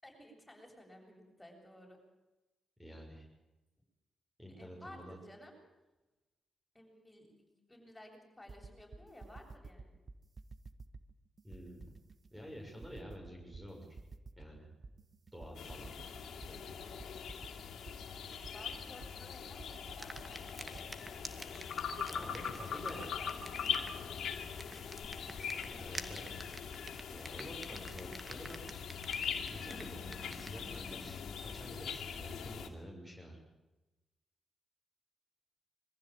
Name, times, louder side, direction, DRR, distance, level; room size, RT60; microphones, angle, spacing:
voice 1, 0.0-2.0 4.5-5.6 6.7-9.9 18.4-20.2 22.7-23.3, left 1 dB, 10° left, 1 dB, 7.9 m, -55 dB
voice 2, 2.8-3.2 4.4-5.2 11.4-11.9 12.3-13.9 14.4-14.7 15.3-16.0 16.5-16.8 22.1-23.1 25.7-26.3 27.1-28.6 29.5-33.4, equal, 10° right, 0 dB, 6.2 m, -49 dB
sound 1, 8.5-20.9, right 3 dB, 50° right, 1.5 m, -52 dB
Canadian Forest Ambiance, 15.6-32.7, left 7 dB, 75° left, 2.6 m, -42 dB
sound 2, 19.9-31.0, right 2 dB, 25° right, 2.6 m, -50 dB
23.0 x 15.0 x 9.0 m, 1.1 s
supercardioid pair, 60°, 0 cm